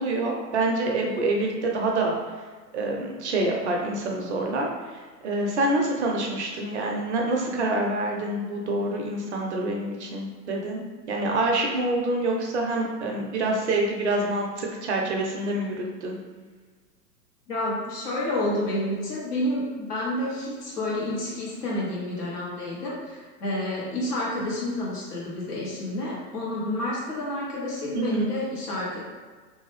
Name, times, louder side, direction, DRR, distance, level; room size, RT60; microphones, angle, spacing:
voice 1, 0.0-2.1 2.7-4.7 5.2-10.8 11.1-16.2 27.9-28.3, right 2 dB, 45° right, 0 dB, 0.5 m, -26 dB
voice 2, 17.5-29.0, left 1 dB, 65° left, -5 dB, 1.3 m, -29 dB
2.7 x 2.2 x 3.2 m, 1.4 s
figure-of-eight pair, 105°, 50 cm